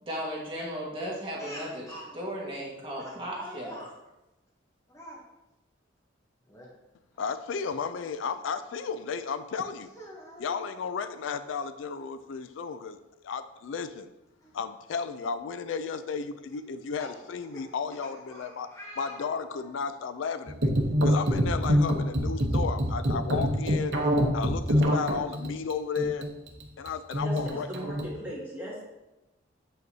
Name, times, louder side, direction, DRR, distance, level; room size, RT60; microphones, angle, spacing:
voice 1, 0.0-3.8, equal, 25° right, -4 dB, 1.5 m, -36 dB
Speech, 1.4-2.2 3.0-4.0 4.9-5.2 6.5-6.7 7.1-7.2 8.9-9.0 9.8-10.7 12.0-12.1 12.4-12.5 14.4-14.5 15.1-15.4 16.5-19.8, equal, 15° left, 0.9 m, -45 dB
voice 2, 7.2-9.9 10.4-13.0 13.2-14.1 14.5-18.7 19.0-20.7 21.0-23.9 24.3-26.3 26.8-27.7, left 5 dB, 80° left, 11 dB, 0.4 m, -33 dB
sound 1, 20.5-28.1, equal, 65° right, 0.9 m, -25 dB
voice 3, 27.2-28.9, equal, 10° right, -7 dB, 1.9 m, -38 dB
7.5 x 5.3 x 2.7 m, 0.99 s
head